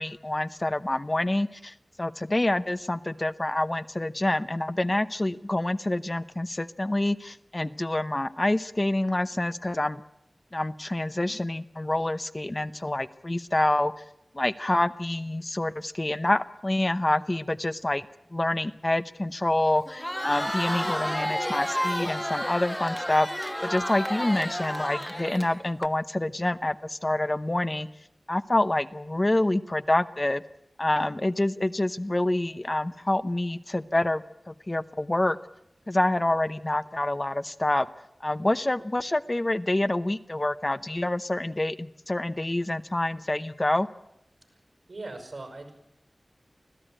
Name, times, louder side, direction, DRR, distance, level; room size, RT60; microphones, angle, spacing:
voice 1, 0.0-10.0 10.5-14.0 14.3-18.1 18.3-27.9 28.3-30.4 30.8-35.4 35.9-37.9 38.2-43.9, left 1 dB, 30° left, 12 dB, 0.8 m, -27 dB
Crowd, 19.9-25.9, equal, 5° left, 1.3 m, -31 dB
voice 2, 44.9-45.7, right 2 dB, 75° right, 5 dB, 5.7 m, -39 dB
25.0 x 15.5 x 9.0 m, 0.85 s
wide cardioid pair, 55°, 0 cm